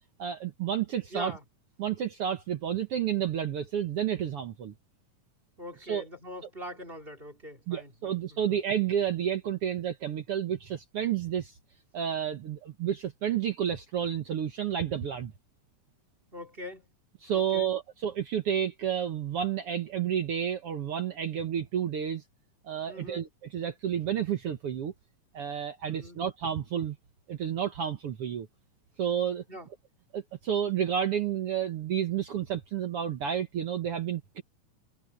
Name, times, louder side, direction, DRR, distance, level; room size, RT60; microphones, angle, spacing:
voice 1, 0.2-1.3 1.8-4.7 5.9-6.0 7.7-11.5 11.9-15.3 17.2-22.2 22.6-23.3 23.5-24.9 25.3-27.0 27.3-28.5 29.0-29.4 30.1-34.4, right 9 dB, 60° right, 1.8 m, -30 dB
voice 2, 1.1-1.4 5.6-8.6 16.3-16.9 17.3-17.7 22.9-23.2 25.9-26.2 29.5-29.7, equal, 20° right, 3.3 m, -43 dB
omnidirectional pair, 3.4 m